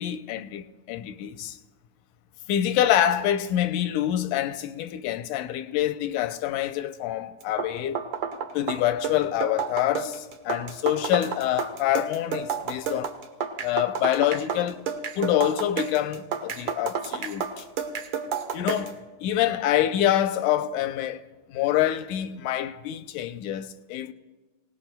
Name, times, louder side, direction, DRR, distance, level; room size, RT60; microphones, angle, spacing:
voice 1, 0.0-1.6 2.5-8.0 8.5-13.1 13.6-14.8 15.2-17.7 18.5-18.9 19.2-24.1, left 12 dB, 85° left, 2.1 m, -26 dB
sound 1, 7.4-19.0, right 7 dB, 80° right, 1.1 m, -31 dB
26.0 x 18.5 x 2.2 m
omnidirectional pair, 3.6 m